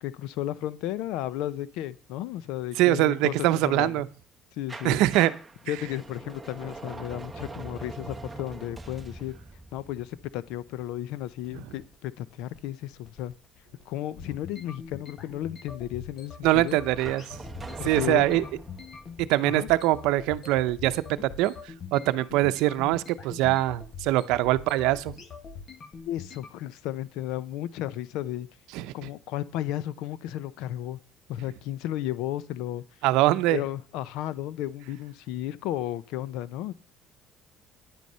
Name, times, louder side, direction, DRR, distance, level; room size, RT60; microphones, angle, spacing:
voice 1, 0.0-3.3 3.6-4.0 4.5-5.0 5.7-9.3 9.7-13.3 13.9-16.8 17.8-18.5 19.4-19.7 26.1-28.5 28.9-31.0 31.3-32.8 33.5-36.7, left 13 dB, 85° left, 0.6 m, -33 dB
voice 2, 2.8-4.1 4.8-5.3 5.7-5.8 16.4-17.3 17.8-18.4 19.2-25.1 28.7-28.9 33.0-33.6, right 16 dB, 85° right, 0.6 m, -23 dB
sound 1, 4.7-11.5 17.0-19.2, right 2 dB, 10° right, 1.1 m, -42 dB
sound 2, 11.3-26.5, left 6 dB, 45° left, 1.6 m, -43 dB
10.0 x 9.4 x 5.5 m
cardioid pair, 120°, 0 cm